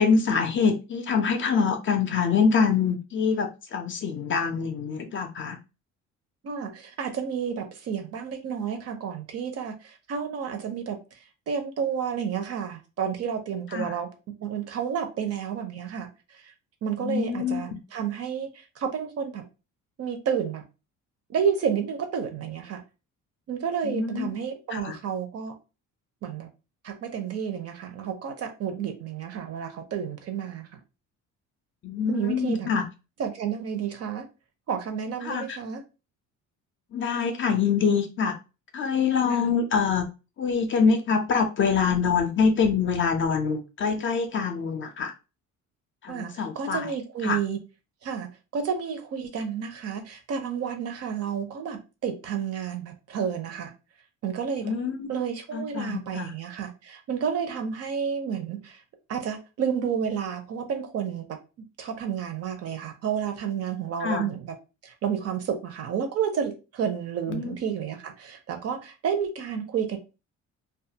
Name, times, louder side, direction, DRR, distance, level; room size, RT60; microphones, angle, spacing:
voice 1, 0.0-5.6 13.7-13.9 17.0-17.8 23.8-24.3 24.7-25.0 31.8-32.8 35.2-35.6 36.9-38.3 38.7-40.1 40.4-45.1 46.0-46.9 47.2-47.4 54.6-55.1 55.5-56.3 64.0-64.2 67.3-67.5, left 5 dB, 40° left, 0.4 m, -25 dB
voice 2, 6.4-11.0 11.5-14.1 14.4-16.5 16.8-19.4 20.0-20.6 21.3-22.8 23.5-25.5 26.2-26.5 26.8-30.7 32.1-32.7 33.2-34.2 34.7-35.8 39.3-39.5 46.1-47.6 48.0-53.7 54.2-54.8 55.1-58.8 59.1-61.3 61.8-64.5 64.8-70.0, right 7 dB, 50° right, 0.6 m, -31 dB
2.3 x 2.3 x 2.7 m
cardioid pair, 155°, 32 cm